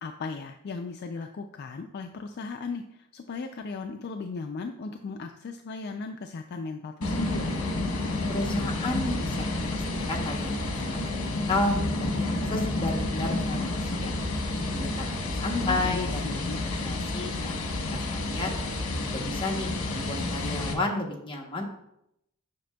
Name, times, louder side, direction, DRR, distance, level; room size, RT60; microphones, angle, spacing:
voice 1, 0.0-7.5 15.6-16.6, left 4 dB, 50° left, 5 dB, 0.3 m, -36 dB
sound 1, 7.0-20.7, left 2 dB, 70° left, 1.1 m, -30 dB
voice 2, 8.3-14.1 14.7-17.6 18.1-18.5 19.1-21.6, left 2 dB, 25° left, 0 dB, 0.9 m, -33 dB
7.6 x 5.8 x 2.3 m, 0.79 s
head